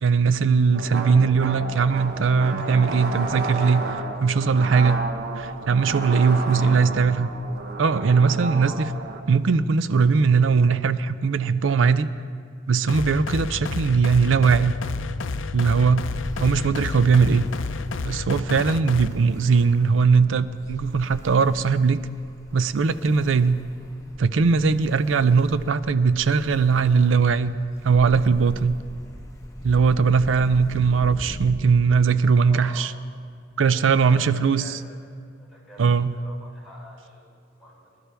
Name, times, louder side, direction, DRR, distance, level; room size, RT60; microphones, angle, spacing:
voice 1, 0.0-3.8 4.2-5.0 5.4-7.3 7.8-8.9 9.3-12.1 12.7-14.7 15.5-16.1 16.4-17.5 18.0-22.0 22.5-23.6 24.2-27.5 27.8-28.8 29.6-32.9 33.6-34.6 35.8-36.1, right 5 dB, 75° right, 14 dB, 0.5 m, -20 dB
sound 1, 0.7-9.2, right 2 dB, 55° right, 1.0 m, -32 dB
voice 2, 6.0-7.1 30.3-30.5 32.4-32.9 33.8-35.0 35.5-38.0, equal, ahead, -7 dB, 3.9 m, -46 dB
sound 2, 12.9-19.1, left 4 dB, 75° left, 0.5 m, -30 dB
Ocean, 16.0-31.5, equal, 15° left, 1.2 m, -41 dB
20.5 x 11.5 x 3.4 m, 2.2 s
head